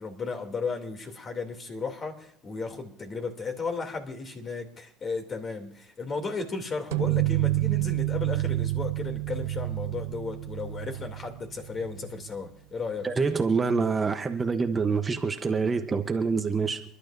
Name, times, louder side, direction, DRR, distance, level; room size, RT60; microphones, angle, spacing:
voice 1, 0.0-13.1, left 4 dB, 35° left, 2.8 m, -35 dB
sound 1, 6.9-12.4, right 17 dB, 90° right, 0.4 m, -29 dB
voice 2, 13.0-16.8, right 4 dB, 20° right, 0.9 m, -26 dB
28.5 x 11.5 x 2.6 m
supercardioid pair, 105°, 0 cm